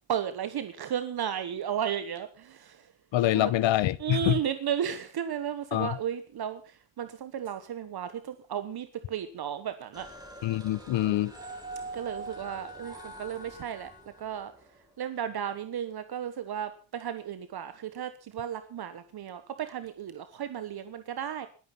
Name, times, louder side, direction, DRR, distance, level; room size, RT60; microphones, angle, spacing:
voice 1, 0.1-2.9 3.3-3.5 4.0-10.1 11.1-11.2 11.9-13.9 14.2-14.5 15.0-21.5, right 9 dB, 60° right, 10 dB, 1.3 m, -34 dB
voice 2, 3.1-4.4 5.7-5.9 10.4-11.3, left 14 dB, 85° left, 20 dB, 0.9 m, -25 dB
sound 1, 9.9-14.8, right 2 dB, 10° right, 4.4 m, -44 dB
20.5 x 9.2 x 5.8 m, 0.38 s
wide cardioid pair, 160°, 44 cm